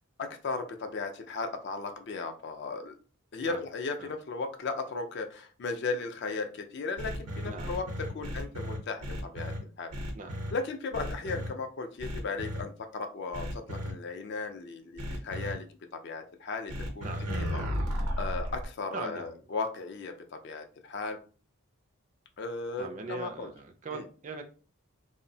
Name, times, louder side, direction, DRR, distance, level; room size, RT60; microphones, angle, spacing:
voice 1, 0.2-2.9 3.3-7.8 8.1-9.9 10.5-17.1 17.5-17.7 18.2-21.2 22.4-23.5 23.9-24.0, left 4 dB, 50° left, 0.4 m, -36 dB
sound 1, 7.0-9.6 9.9-10.5 10.9-11.5 12.0-12.6 13.3-13.9 15.0-15.5 16.7-18.6, equal, 90° right, 0.7 m, -34 dB
voice 2, 7.4-7.7 10.1-10.4 17.0-17.3 18.9-19.4 22.8-24.4, right 4 dB, 35° right, 0.3 m, -40 dB
2.6 x 2.0 x 2.6 m
head